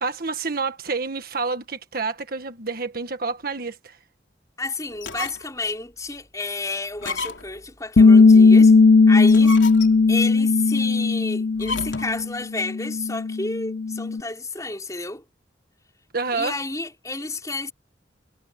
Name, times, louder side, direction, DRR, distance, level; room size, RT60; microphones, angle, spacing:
voice 1, 0.0-4.0 16.1-16.5, right 4 dB, 50° right, 1.6 m, -28 dB
voice 2, 4.6-8.7 9.1-9.6 10.1-15.2 16.3-17.7, left 3 dB, 20° left, 4.5 m, -31 dB
sound 1, 4.9-5.6 6.1-6.2 7.0-7.7 9.1-10.2 11.6-12.2, left 3 dB, 85° left, 3.5 m, -33 dB
Bass guitar, 8.0-12.3 12.6-14.2, left 4 dB, 60° left, 0.6 m, -16 dB
head